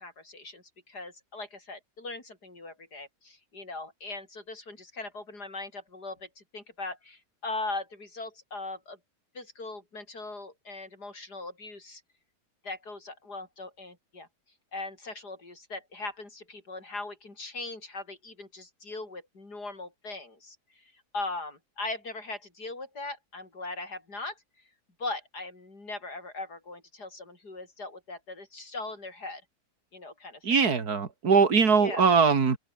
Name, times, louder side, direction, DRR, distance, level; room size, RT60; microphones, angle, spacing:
voice 1, 0.0-9.0 9.3-12.0 12.6-14.3 14.7-20.6 21.1-24.4 25.0-29.4 29.9-30.6 31.8-32.1, left 2 dB, 90° left, 6.1 m, -39 dB
voice 2, 30.4-32.6, right 5 dB, 70° right, 2.7 m, -21 dB
open air
omnidirectional pair, 1.7 m